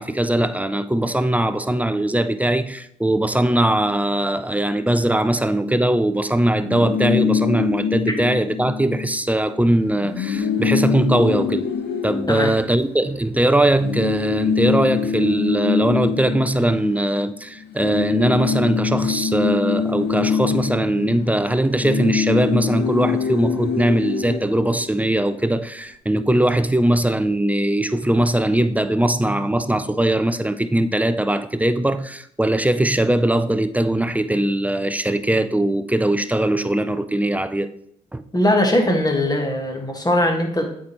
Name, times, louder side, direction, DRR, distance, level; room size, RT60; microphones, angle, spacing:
voice 1, 0.0-11.7 12.0-37.7 38.1-38.2, right 1 dB, 10° right, 0.5 m, -20 dB
sound 1, 6.6-9.2 9.5-9.6 9.9-13.3 13.8-17.4 17.6-25.2, left 6 dB, 60° left, 0.8 m, -24 dB
voice 2, 38.3-40.8, left 1 dB, 20° left, 1.8 m, -20 dB
8.1 x 4.6 x 3.1 m
hypercardioid pair, 50°, 19 cm